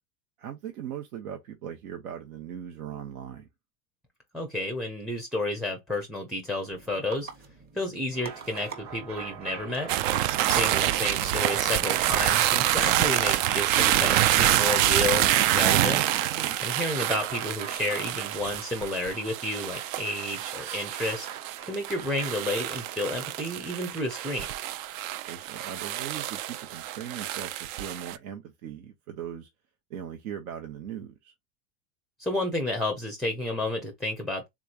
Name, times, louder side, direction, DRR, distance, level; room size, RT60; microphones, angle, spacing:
voice 1, 0.4-3.5 16.3-16.6 25.3-29.5 29.9-31.3, right 9 dB, 85° right, 0.9 m, -39 dB
voice 2, 4.3-7.3 7.7-9.9 10.5-16.0 16.6-21.3 21.6-24.5 32.2-34.5, left 1 dB, ahead, 0.4 m, -31 dB
sound 1, 6.7-13.8, right 5 dB, 20° right, 0.8 m, -47 dB
sound 2, 8.1-24.7 26.0-26.4, right 7 dB, 45° right, 1.0 m, -44 dB
sound 3, 9.9-28.2, right 13 dB, 65° right, 0.5 m, -26 dB
3.6 x 3.1 x 2.3 m
supercardioid pair, 120°, 42 cm